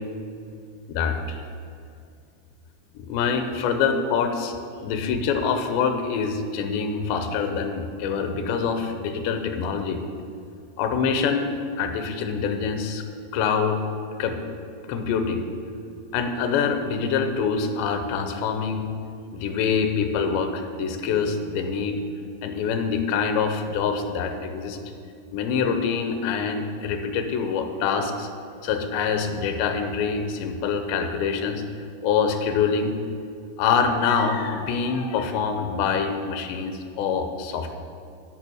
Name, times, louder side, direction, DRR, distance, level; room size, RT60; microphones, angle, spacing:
voice 1, 0.9-1.4 3.0-4.6 4.8-10.0 10.8-13.0 13.3-13.8 14.2-14.4 14.9-15.5 16.1-18.9 19.3-22.0 22.4-24.8 25.3-28.3 28.6-31.6 32.0-32.9 33.6-37.8, left 6 dB, 85° left, 6 dB, 2.9 m, -25 dB
13.5 x 5.4 x 6.1 m, 2.4 s
omnidirectional pair, 5.0 m